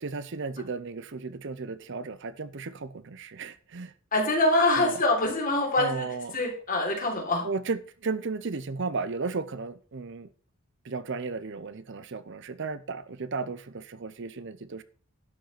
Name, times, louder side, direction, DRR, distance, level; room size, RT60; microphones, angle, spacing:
voice 1, 0.0-3.9 4.8-5.0 5.7-6.4 7.4-10.3 10.8-14.8, right 4 dB, 55° right, 0.6 m, -34 dB
voice 2, 4.1-7.5, left 2 dB, 40° left, 3.6 m, -25 dB
12.0 x 5.5 x 5.8 m
head